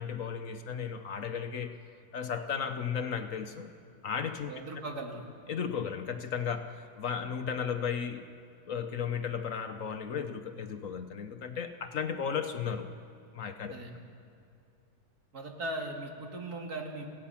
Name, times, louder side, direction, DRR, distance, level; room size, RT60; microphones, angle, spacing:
voice 1, 0.0-1.8 2.1-3.7 4.0-4.5 5.5-8.3 8.7-12.9 13.3-13.7, left 7 dB, 60° left, 8 dB, 1.1 m, -35 dB
voice 2, 4.4-5.2 13.7-14.0 15.3-17.1, right 2 dB, 65° right, 1 dB, 2.9 m, -38 dB
29.0 x 17.5 x 5.8 m, 2.7 s
omnidirectional pair, 1.7 m